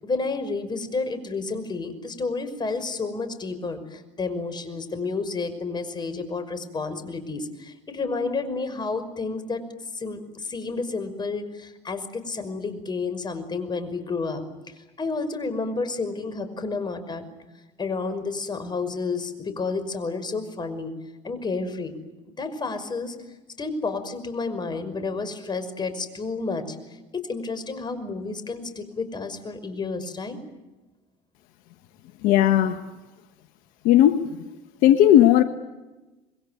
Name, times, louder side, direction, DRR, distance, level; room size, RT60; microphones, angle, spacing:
voice 1, 0.0-9.6 9.9-17.2 17.8-20.9 21.2-21.9 22.4-23.2 23.6-30.4, left 4 dB, 30° left, 10 dB, 5.8 m, -30 dB
voice 2, 32.2-32.8 33.8-34.4 34.8-35.4, left 12 dB, 70° left, 9 dB, 1.4 m, -16 dB
26.5 x 22.0 x 9.4 m, 1.1 s
hypercardioid pair, 75°, 15 cm